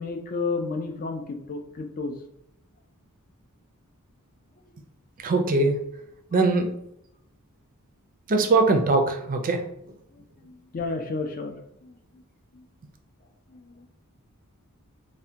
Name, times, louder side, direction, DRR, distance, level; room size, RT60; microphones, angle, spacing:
voice 1, 0.0-2.1 10.4-11.9 12.5-12.6 13.5-13.9, left 3 dB, 40° left, 4 dB, 0.4 m, -32 dB
voice 2, 5.2-5.8 6.3-6.7 8.3-9.7, right 3 dB, 40° right, 6 dB, 0.4 m, -21 dB
3.3 x 2.1 x 2.7 m, 0.75 s
head